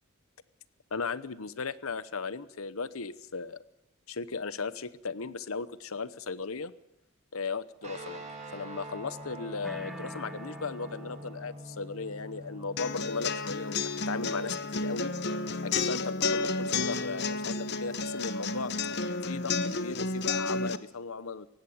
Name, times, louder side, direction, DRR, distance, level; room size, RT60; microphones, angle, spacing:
voice 1, 0.9-3.6 4.1-6.7 7.3-8.2 8.5-15.1 15.6-18.7 19.2-21.5, left 4 dB, 85° left, 15 dB, 0.9 m, -36 dB
sound 1, 7.8-18.1, equal, 35° right, 5.5 m, -46 dB
sound 2, 9.6-11.6, equal, ahead, 0.8 m, -45 dB
sound 3, 12.8-20.8, left 3 dB, 50° left, 0.9 m, -31 dB
18.0 x 16.0 x 9.4 m, 0.86 s
head